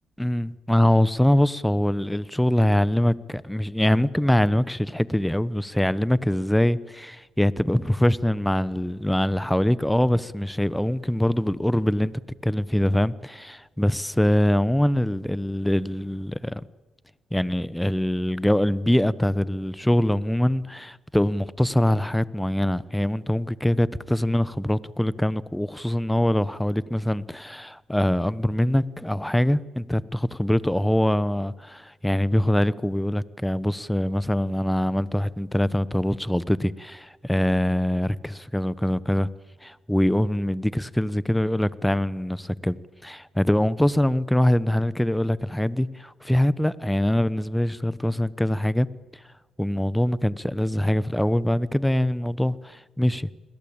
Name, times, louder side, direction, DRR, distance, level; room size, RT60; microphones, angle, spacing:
voice 1, 0.2-12.1 12.4-16.6 17.3-39.3 39.6-48.9 49.6-53.3, left 1 dB, 5° left, 0.9 m, -23 dB
28.5 x 21.0 x 8.8 m
cardioid pair, 90°, 0 cm